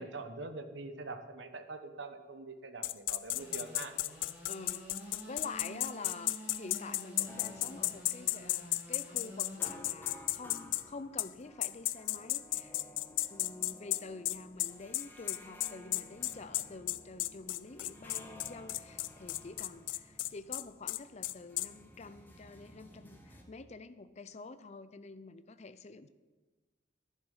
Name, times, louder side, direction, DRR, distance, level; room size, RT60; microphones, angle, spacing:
voice 1, 0.0-3.9, right 3 dB, 70° right, 8 dB, 1.2 m, -44 dB
sound 1, 2.8-10.8 11.2-11.3 11.6-21.7, left 17 dB, 85° left, 0.4 m, -34 dB
Engine / Sawing, 3.3-9.6, equal, 10° right, 4.2 m, -49 dB
voice 2, 4.5-4.9 5.3-12.7 13.1-26.1, left 3 dB, 35° left, 12 dB, 0.5 m, -47 dB
sound 2, 7.2-23.4, left 1 dB, 10° left, 1.6 m, -55 dB
11.0 x 11.0 x 5.6 m, 1.3 s
head